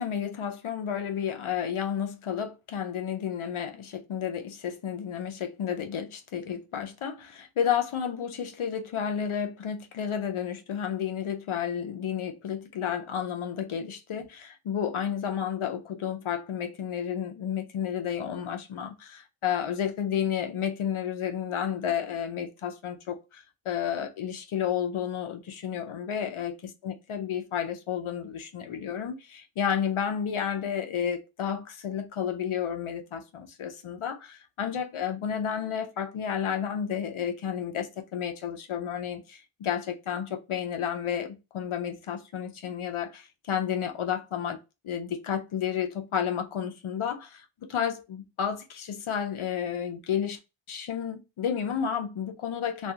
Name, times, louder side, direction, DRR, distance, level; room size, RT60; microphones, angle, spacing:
voice 1, 0.0-44.6 44.8-50.4 50.7-52.9, left 8 dB, 80° left, 0.6 m, -31 dB
2.4 x 2.3 x 2.7 m
wide cardioid pair, 60°, 49 cm